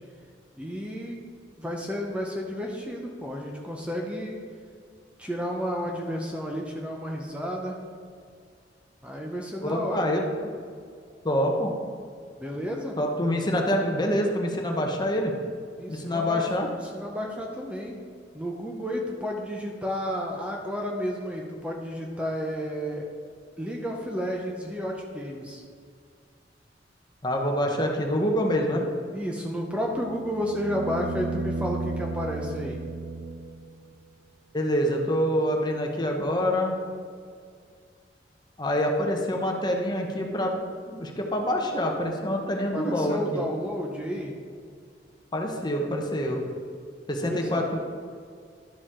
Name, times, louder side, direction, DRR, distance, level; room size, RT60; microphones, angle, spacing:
voice 1, 0.6-1.2 1.6-4.4 5.2-7.8 9.0-10.1 12.4-13.0 15.8-18.0 18.3-23.1 23.6-25.6 29.1-32.8 42.7-44.4 47.2-47.7, equal, 5° right, -1 dB, 0.7 m, -32 dB
voice 2, 9.6-10.2 11.2-11.7 13.0-15.3 15.9-16.7 27.2-28.8 34.5-36.7 38.6-40.6 40.9-43.5 45.3-46.4 47.1-47.8, equal, 25° left, 2 dB, 0.9 m, -26 dB
sound 1, 29.7-33.8 36.2-36.3, right 3 dB, 90° right, 0.7 m, -34 dB
11.5 x 4.9 x 3.7 m, 2.1 s
head